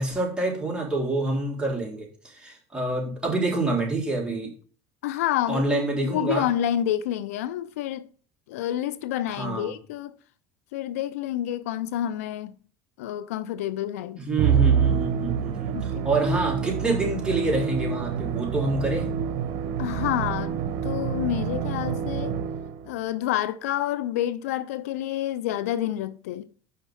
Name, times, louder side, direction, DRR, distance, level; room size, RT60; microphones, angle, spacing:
voice 1, 0.0-4.5 5.5-6.5 9.3-9.7 14.2-19.2, right 2 dB, 10° right, 3.7 m, -27 dB
voice 2, 5.0-8.1 8.5-10.2 10.7-12.6 13.0-14.2 15.7-16.1 19.8-20.6 20.8-22.4 22.9-26.5, left 12 dB, 85° left, 0.5 m, -28 dB
Musical instrument, 14.4-22.9, right 8 dB, 65° right, 0.9 m, -27 dB
5.8 x 5.3 x 6.2 m
supercardioid pair, 85°, 8 cm